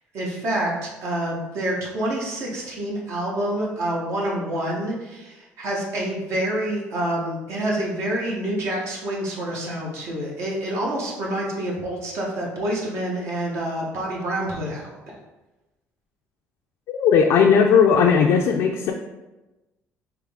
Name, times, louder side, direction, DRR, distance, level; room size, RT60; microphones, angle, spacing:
voice 1, 0.1-15.1, right 1 dB, 65° right, -3 dB, 1.0 m, -27 dB
voice 2, 16.9-18.9, left 6 dB, 75° left, 2 dB, 0.3 m, -17 dB
3.7 x 2.9 x 3.5 m, 1.1 s
cardioid pair, 110°, 5 cm